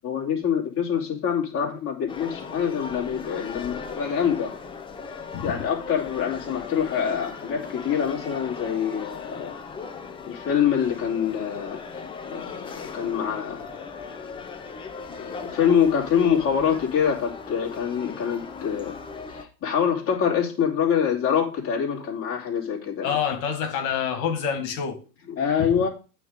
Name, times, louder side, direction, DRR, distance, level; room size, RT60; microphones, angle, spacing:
voice 1, 0.0-4.5 5.4-9.5 10.2-13.7 15.1-19.0 19.3-23.2 25.3-25.9, left 8 dB, 30° left, 2.8 m, -25 dB
sound 1, 2.1-19.4, left 5 dB, 10° left, 0.6 m, -38 dB
voice 2, 23.0-25.0, left 7 dB, 60° left, 2.2 m, -27 dB
9.1 x 3.7 x 6.5 m
hypercardioid pair, 115°, 48 cm